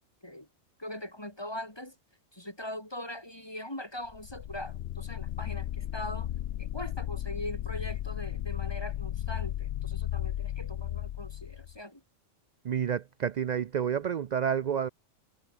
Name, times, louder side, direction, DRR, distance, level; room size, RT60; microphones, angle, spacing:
voice 1, 0.8-1.9 2.3-6.3 6.6-12.0, left 1 dB, 20° left, 4.6 m, -41 dB
sound 1, 4.1-11.8, left 12 dB, 65° left, 0.7 m, -35 dB
voice 2, 12.6-14.9, right 8 dB, 75° right, 0.4 m, -29 dB
omnidirectional pair, 1.4 m